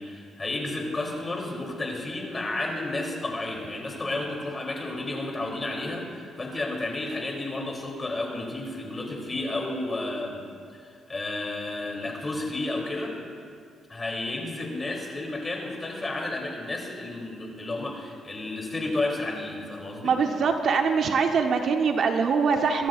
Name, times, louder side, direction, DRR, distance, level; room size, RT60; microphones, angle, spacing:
voice 1, 0.0-10.4 10.7-13.2 13.9-20.2, left 2 dB, 25° left, 0 dB, 3.3 m, -32 dB
voice 2, 20.0-22.9, right 5 dB, 60° right, 5 dB, 1.0 m, -23 dB
24.0 x 13.0 x 2.6 m, 2.3 s
cardioid pair, 90°, 0 cm